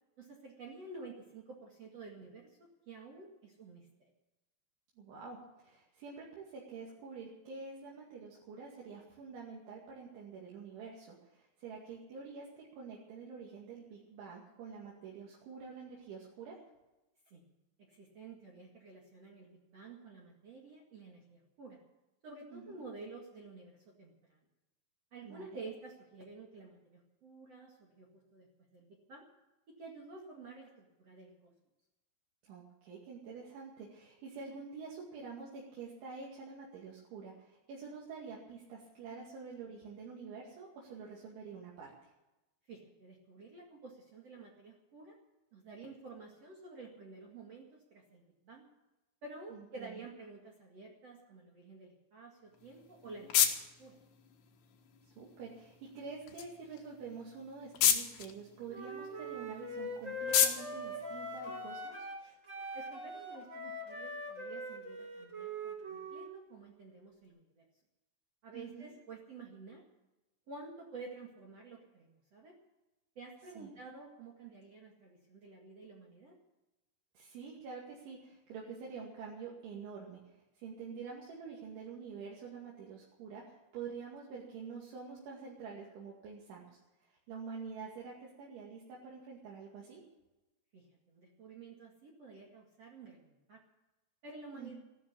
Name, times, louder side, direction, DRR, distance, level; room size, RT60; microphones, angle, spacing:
voice 1, 0.2-3.9 17.3-17.5 17.8-21.8 22.2-24.4 25.1-29.2 29.8-31.5 42.7-45.2 45.5-48.6 49.2-54.0 62.7-67.6 68.4-69.8 70.5-72.6 73.2-76.4 90.7-93.6 94.2-94.8, right 3 dB, 45° right, -1 dB, 2.1 m, -51 dB
voice 2, 5.0-16.6 22.5-22.8 25.2-25.6 32.4-41.9 49.5-49.9 55.2-62.1 68.5-68.9 73.6-73.7 77.1-80.2 80.6-86.8 87.1-90.0 94.5-94.8, right 5 dB, 70° right, -4 dB, 4.7 m, -47 dB
sound 1, 52.5-62.0, left 9 dB, 65° left, 3.1 m, -35 dB
Wind instrument woodwind instrument, 58.7-62.2 62.5-66.3, equal, 20° right, 2.5 m, -42 dB
15.5 x 12.5 x 6.9 m, 1.0 s
omnidirectional pair, 5.8 m